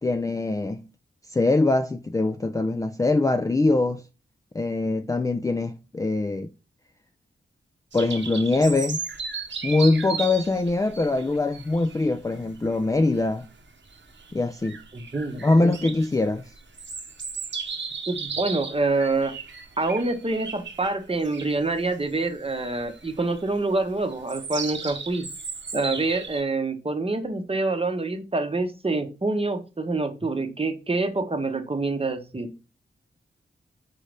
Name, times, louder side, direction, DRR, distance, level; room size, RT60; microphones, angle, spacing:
voice 1, 0.0-0.8 1.3-4.0 4.5-6.5 7.9-9.0 9.6-13.5 14.3-14.8 15.4-16.4, left 2 dB, 15° left, 0.3 m, -23 dB
sound 1, 7.9-26.4, right 5 dB, 60° right, 0.9 m, -36 dB
voice 2, 14.9-15.4 18.1-19.3 19.8-25.3 25.7-32.5, right 3 dB, 25° right, 0.8 m, -26 dB
4.1 x 3.8 x 3.3 m
cardioid pair, 60°, 21 cm